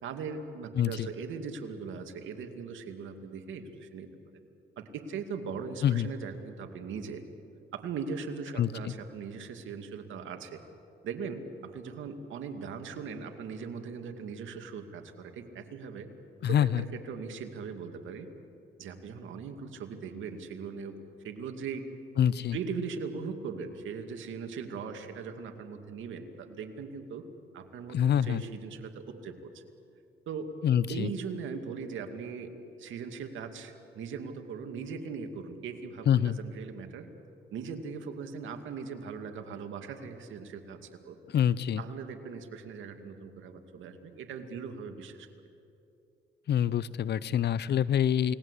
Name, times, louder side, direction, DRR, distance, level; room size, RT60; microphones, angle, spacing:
voice 1, 0.0-4.1 4.8-7.2 7.7-10.6 11.0-16.1 16.4-18.3 18.8-20.9 21.2-21.8 22.5-27.2 27.5-29.6 30.3-30.5 30.9-32.5 32.8-37.1 37.5-41.2 41.8-45.3, right 5 dB, 75° right, 6 dB, 2.4 m, -39 dB
voice 2, 0.8-1.1 5.8-6.1 8.6-8.9 16.4-16.8 22.2-22.6 27.9-28.4 30.6-31.1 36.1-36.4 41.3-41.8 46.5-48.4, left 9 dB, 55° left, 18 dB, 0.7 m, -26 dB
29.0 x 19.5 x 8.3 m, 2.7 s
cardioid pair, 90°, 20 cm